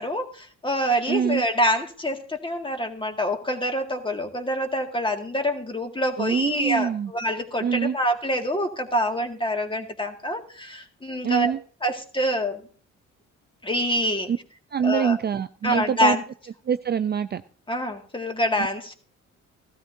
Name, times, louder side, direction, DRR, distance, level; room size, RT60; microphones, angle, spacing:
voice 1, 0.0-11.5 11.8-12.6 13.6-14.3 14.8-15.2 15.6-16.2 17.7-18.9, equal, 15° left, 4 dB, 1.9 m, -26 dB
voice 2, 1.1-1.4 6.2-7.1 7.6-8.0 11.2-11.6 14.3-14.4 14.7-16.2 16.7-17.4, right 7 dB, 35° right, 11 dB, 0.4 m, -24 dB
16.0 x 13.0 x 2.6 m, 0.42 s
cardioid pair, 90°, 30 cm